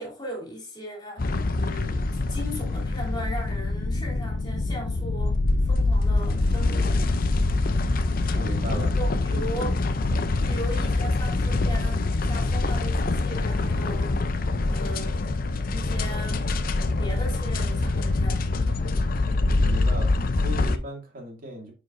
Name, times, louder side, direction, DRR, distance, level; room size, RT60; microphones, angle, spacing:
voice 1, 0.0-2.0 2.3-7.0 9.0-9.7 10.5-14.2 14.7-15.2 15.7-16.4 16.7-18.5, equal, 25° left, 3.1 m, -38 dB
sound 1, 1.2-20.8, left 2 dB, 50° left, 0.6 m, -25 dB
voice 2, 8.3-9.0 9.3-9.5 10.4-10.6 19.6-21.7, right 1 dB, 50° right, 2.5 m, -37 dB
9.4 x 4.9 x 2.6 m
head